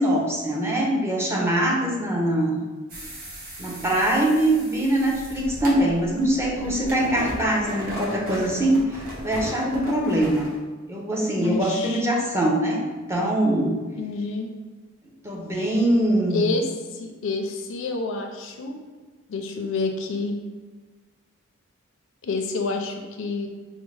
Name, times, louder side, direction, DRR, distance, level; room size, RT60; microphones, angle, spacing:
voice 1, 0.0-2.6 3.6-10.5 10.9-13.8 15.2-16.4, right 1 dB, 10° right, -3 dB, 0.6 m, -23 dB
sound 1, 2.9-10.6, right 1 dB, 45° right, 1.0 m, -36 dB
voice 2, 11.4-12.0 14.0-14.5 15.5-15.7 16.3-18.7 19.3-20.4 22.2-23.5, left 3 dB, 65° left, 4 dB, 0.4 m, -28 dB
5.0 x 2.0 x 3.2 m, 1.3 s
head